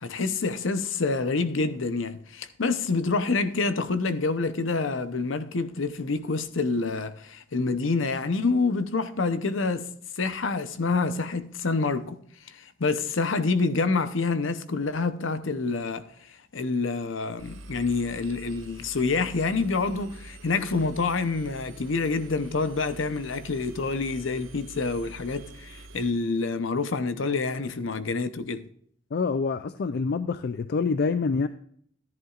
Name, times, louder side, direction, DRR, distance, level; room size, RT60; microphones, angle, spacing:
voice 1, 0.0-9.9 10.2-12.2 12.5-16.0 16.5-28.6, left 3 dB, 70° left, 0.8 m, -27 dB
Engine, 17.4-26.1, right 1 dB, 80° right, 1.0 m, -46 dB
voice 2, 29.1-31.5, left 4 dB, 50° left, 0.4 m, -26 dB
14.0 x 10.5 x 2.4 m
head